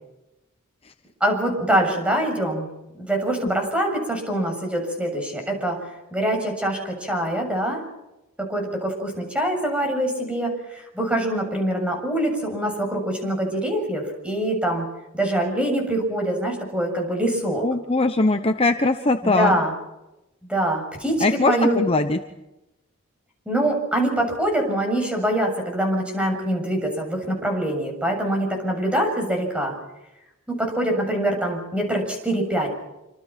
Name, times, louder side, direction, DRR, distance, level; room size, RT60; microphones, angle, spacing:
voice 1, 1.2-2.7 3.0-5.8 6.1-7.8 8.4-14.9 15.1-17.7 19.2-19.7 20.4-21.8 23.5-29.7 30.5-32.7, right 1 dB, 5° right, 2 dB, 7.2 m, -24 dB
voice 2, 17.6-19.6 21.2-22.2, left 2 dB, 25° left, 7 dB, 1.0 m, -21 dB
27.5 x 26.5 x 6.0 m, 0.94 s
head